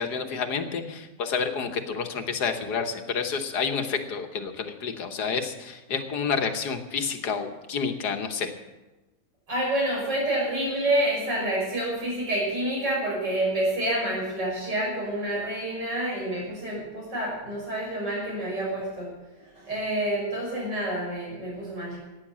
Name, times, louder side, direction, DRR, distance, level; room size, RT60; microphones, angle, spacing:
voice 1, 0.0-8.5, left 5 dB, 65° left, 6 dB, 1.7 m, -29 dB
voice 2, 9.5-19.1 19.6-22.0, right 1 dB, 80° right, -4 dB, 6.9 m, -28 dB
15.0 x 9.6 x 7.4 m, 1.1 s
omnidirectional pair, 1.9 m